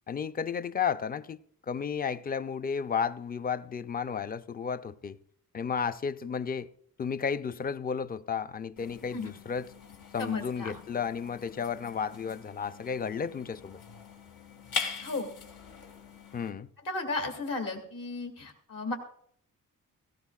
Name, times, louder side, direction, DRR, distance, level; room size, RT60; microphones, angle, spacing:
voice 1, 0.1-1.4 1.7-5.2 5.5-6.7 7.0-9.7 10.1-13.8 16.3-16.7, left 6 dB, 25° left, 0.4 m, -33 dB
sound 1, 8.8-16.5, left 5 dB, 90° left, 2.1 m, -42 dB
voice 2, 10.2-10.7 15.0-15.3 16.9-18.9, left 3 dB, 70° left, 2.2 m, -34 dB
17.0 x 17.0 x 2.4 m
wide cardioid pair, 150°, 35 cm